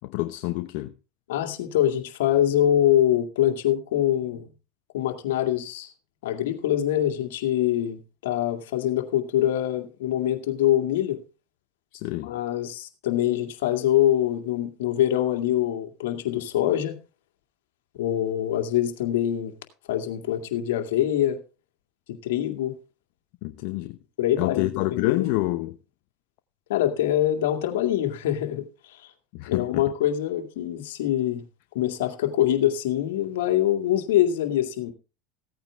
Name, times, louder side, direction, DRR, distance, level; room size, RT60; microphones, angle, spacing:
voice 1, 0.0-0.9 11.9-12.3 23.4-24.0 24.4-25.8 29.3-29.8, left 18 dB, 65° left, 0.8 m, -28 dB
voice 2, 1.3-4.5 4.9-5.9 6.2-11.2 12.2-17.0 17.9-19.5 19.9-21.4 22.1-22.7 24.2-25.4 26.7-29.0 29.5-31.4 31.7-34.9, left 12 dB, 85° left, 2.2 m, -24 dB
16.0 x 8.9 x 3.5 m
supercardioid pair, 110°, 0 cm